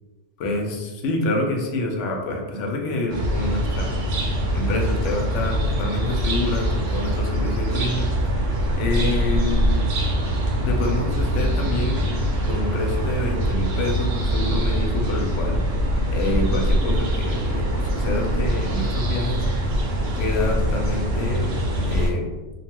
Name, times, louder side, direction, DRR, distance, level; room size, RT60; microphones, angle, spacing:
voice 1, 0.4-3.9 4.5-8.1 8.8-9.8 10.6-12.0 12.4-15.6 16.1-19.5 20.2-21.5 21.9-22.3, left 2 dB, 70° left, 1 dB, 0.9 m, -27 dB
sound 1, 3.1-22.1, equal, 75° right, 0.9 m, -23 dB
2.7 x 2.2 x 2.9 m, 1.2 s
omnidirectional pair, 1.3 m